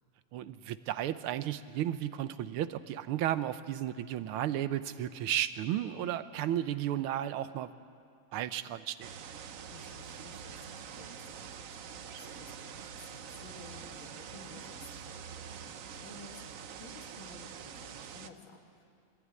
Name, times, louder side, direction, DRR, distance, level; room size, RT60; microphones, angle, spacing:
voice 1, 0.3-7.7 8.3-9.1, right 11 dB, 85° right, 13 dB, 1.6 m, -33 dB
sound 1, 9.0-18.3, right 7 dB, 60° right, 0.8 m, -45 dB
voice 2, 9.7-18.8, left 3 dB, 70° left, 1 dB, 3.1 m, -54 dB
22.0 x 15.5 x 9.6 m, 2.4 s
omnidirectional pair, 2.3 m